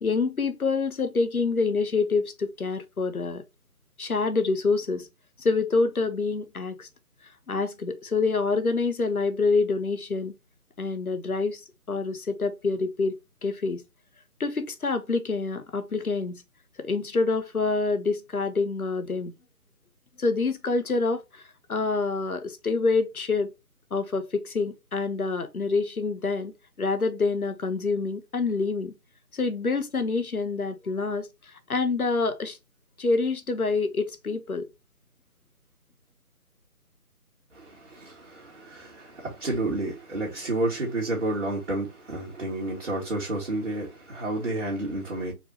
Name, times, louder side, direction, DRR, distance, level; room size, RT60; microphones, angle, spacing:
voice 1, 0.0-3.4 4.0-5.1 5.4-6.9 7.5-10.3 10.8-11.6 11.9-13.1 13.4-13.8 14.4-16.4 16.8-19.3 20.2-21.4 21.7-23.5 23.9-26.5 26.8-28.9 29.3-32.6 33.0-34.7, left 4 dB, 70° left, 1.1 m, -26 dB
voice 2, 37.5-45.3, right 2 dB, 45° right, 2.0 m, -30 dB
4.6 x 3.5 x 2.9 m
figure-of-eight pair, 150°, 45 cm